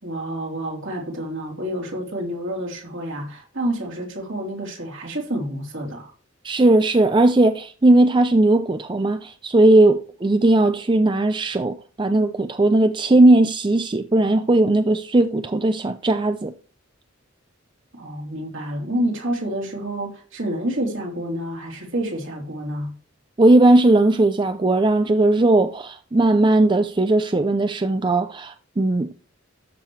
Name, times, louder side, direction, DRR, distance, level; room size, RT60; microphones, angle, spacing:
voice 1, 0.0-6.1 17.9-23.0, right 1 dB, 65° right, 3.5 m, -28 dB
voice 2, 6.4-16.5 23.4-29.1, right 2 dB, 25° right, 0.4 m, -17 dB
13.0 x 6.7 x 3.2 m
head